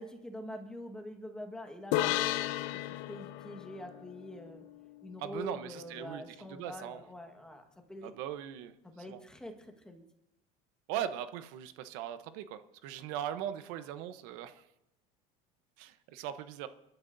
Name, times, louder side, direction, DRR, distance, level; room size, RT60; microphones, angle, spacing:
voice 1, 0.0-2.2 3.1-4.6 5.0-7.6 7.9-8.1 8.8-10.0, left 1 dB, 5° left, 4 dB, 1.5 m, -45 dB
sound 1, 1.9-5.4, left 14 dB, 70° left, 0.6 m, -35 dB
voice 2, 5.2-7.0 8.0-8.7 9.1-9.2 10.9-14.6 15.8-16.7, right 10 dB, 75° right, 10 dB, 0.9 m, -39 dB
28.5 x 12.0 x 2.7 m, 0.88 s
cardioid pair, 160°, 17 cm